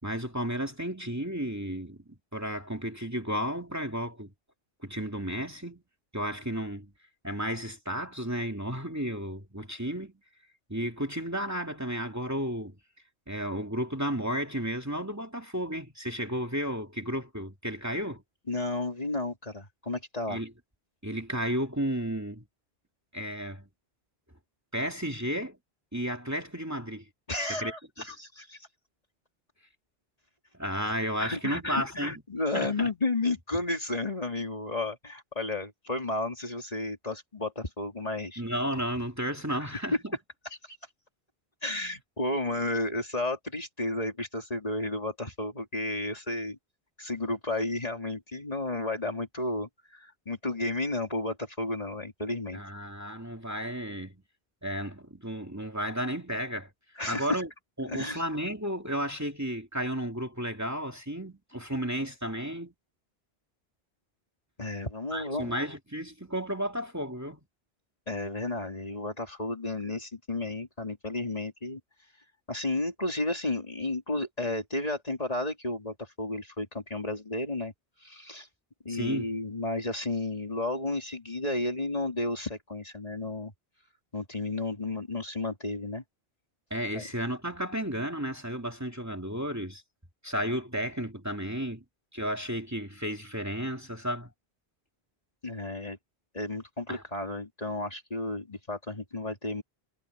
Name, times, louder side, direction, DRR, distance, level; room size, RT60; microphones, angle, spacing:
voice 1, 0.0-4.3 4.8-5.8 6.1-6.9 7.2-10.1 10.7-12.7 13.3-18.2 20.3-20.5 21.0-22.4 23.1-23.7 24.7-25.6 25.9-27.1 27.5-27.7 30.6-32.2 32.5-32.9 38.4-40.2 52.5-54.2 54.6-56.7 57.1-57.5 57.8-62.7 65.1-67.4 78.9-79.3 86.7-89.8 90.2-91.8 92.1-94.3 96.9-97.0, equal, 15° right, 2.5 m, -33 dB
voice 2, 18.5-20.4 27.3-28.7 31.2-38.4 39.5-39.7 40.6-40.8 41.6-46.6 47.0-52.6 57.0-57.3 57.9-58.2 64.6-65.6 68.1-71.8 72.5-77.7 78.0-78.5 78.8-83.5 84.1-86.0 86.9-87.0 95.4-96.0 96.3-99.6, left 2 dB, 35° left, 2.8 m, -32 dB
omnidirectional pair, 1.1 m